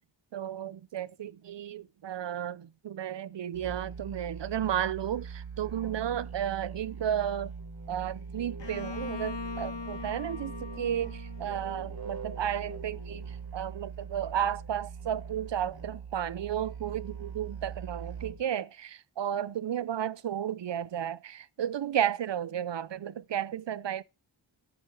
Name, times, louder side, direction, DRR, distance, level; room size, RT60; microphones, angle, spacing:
voice 1, 0.3-7.5 7.9-24.0, right 10 dB, 70° right, 0.7 m, -33 dB
Musical instrument, 3.5-18.5, right 6 dB, 55° right, 2.0 m, -42 dB
Bowed string instrument, 8.6-12.3, left 4 dB, 65° left, 1.7 m, -41 dB
9.9 x 8.7 x 4.4 m
wide cardioid pair, 60°, 45 cm